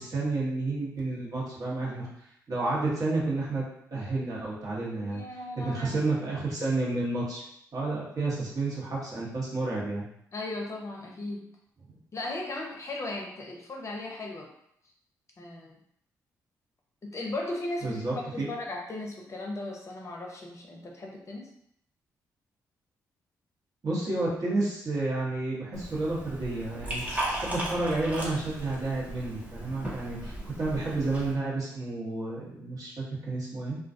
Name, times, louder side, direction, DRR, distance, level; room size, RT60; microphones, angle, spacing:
voice 1, 0.0-2.1 2.5-3.6 3.9-5.2 5.5-7.4 7.7-10.1 11.9-12.0 17.8-18.5 23.8-33.8, right 2 dB, 50° right, -6 dB, 1.1 m, -31 dB
voice 2, 5.0-5.9 10.3-11.5 12.1-14.5 15.4-15.7 17.0-21.5, left 2 dB, 40° left, 0 dB, 0.6 m, -37 dB
Liquid, 25.7-31.3, right 1 dB, 20° right, 0.9 m, -36 dB
2.3 x 2.2 x 2.6 m, 0.74 s
supercardioid pair, 50°, 8 cm